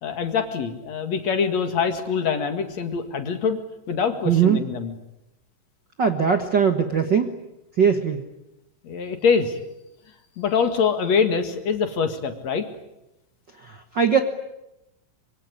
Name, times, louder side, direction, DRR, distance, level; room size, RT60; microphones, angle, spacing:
voice 1, 0.0-3.6 3.9-4.9 8.8-9.6 10.4-12.7, left 6 dB, 55° left, 7 dB, 3.0 m, -24 dB
voice 2, 4.2-4.6 6.0-7.3 7.8-8.2 13.6-14.2, right 7 dB, 50° right, 7 dB, 1.4 m, -20 dB
25.0 x 24.5 x 9.8 m, 0.92 s
omnidirectional pair, 3.9 m